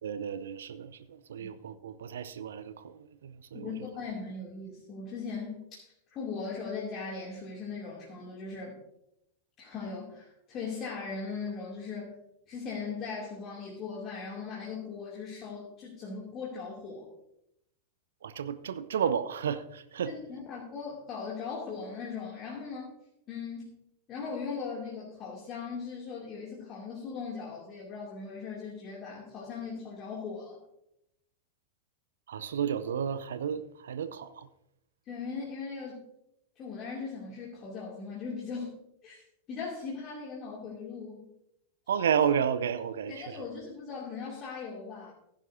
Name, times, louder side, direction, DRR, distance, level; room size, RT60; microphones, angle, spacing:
voice 1, 0.0-3.7 18.2-20.1 32.3-34.5 41.9-43.4, right 8 dB, 65° right, 13 dB, 0.6 m, -32 dB
voice 2, 3.5-8.8 9.6-12.2 12.5-17.1 20.1-22.9 23.3-23.7 24.1-30.6 35.0-36.0 36.6-38.7 39.0-41.3 43.1-45.1, left 5 dB, 35° left, -4 dB, 2.6 m, -39 dB
15.5 x 10.5 x 2.7 m, 0.82 s
figure-of-eight pair, 90°, 0 cm